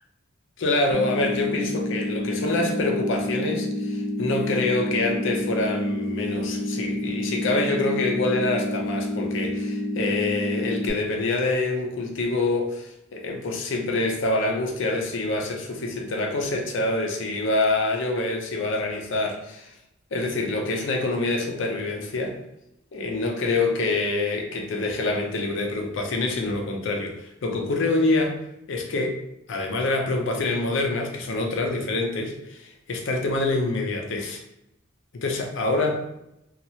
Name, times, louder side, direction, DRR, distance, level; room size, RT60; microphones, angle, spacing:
voice 1, 0.6-19.7 20.1-22.4 22.9-28.4 28.7-29.2 29.5-34.4 35.1-36.0, left 2 dB, 70° left, 3 dB, 0.5 m, -26 dB
sound 1, 0.9-10.9, left 1 dB, 25° right, 0.8 m, -29 dB
2.8 x 2.3 x 2.7 m, 0.84 s
head